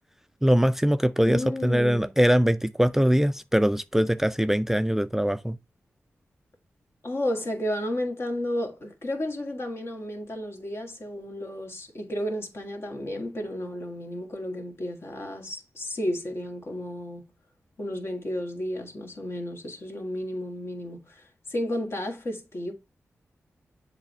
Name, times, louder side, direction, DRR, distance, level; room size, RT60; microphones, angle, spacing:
voice 1, 0.4-5.6, equal, 5° right, 0.3 m, -22 dB
voice 2, 1.3-2.1 7.0-17.3 17.8-22.7, left 1 dB, 55° left, 1.8 m, -32 dB
7.4 x 3.4 x 4.2 m
cardioid pair, 65°, 5 cm